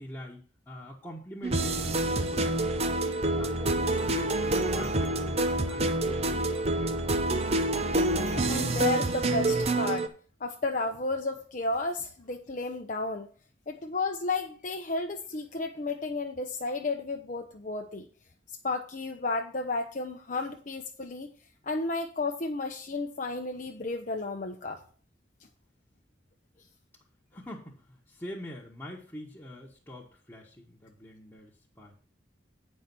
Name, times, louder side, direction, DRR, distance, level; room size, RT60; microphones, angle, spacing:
voice 1, 0.0-2.5 3.0-6.9 27.3-31.9, left 1 dB, 10° left, -6 dB, 1.2 m, -44 dB
sound 1, 1.4-10.1, right 2 dB, 35° right, 0.7 m, -27 dB
voice 2, 7.9-10.1 10.4-13.3 13.7-18.1 18.6-21.3 21.6-24.8, left 3 dB, 40° left, 3 dB, 0.7 m, -33 dB
8.9 x 5.5 x 6.0 m, 0.40 s
head